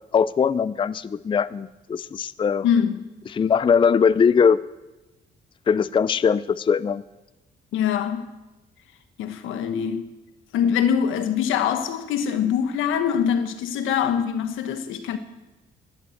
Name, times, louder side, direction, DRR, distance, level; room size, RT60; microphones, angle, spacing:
voice 1, 0.1-2.7 3.3-4.6 5.7-7.0, left 6 dB, 25° left, 0.4 m, -20 dB
voice 2, 2.6-3.1 7.7-8.3 9.2-10.1 10.5-15.2, left 8 dB, 90° left, 1.3 m, -23 dB
11.0 x 11.0 x 7.8 m
cardioid pair, 90°, 20 cm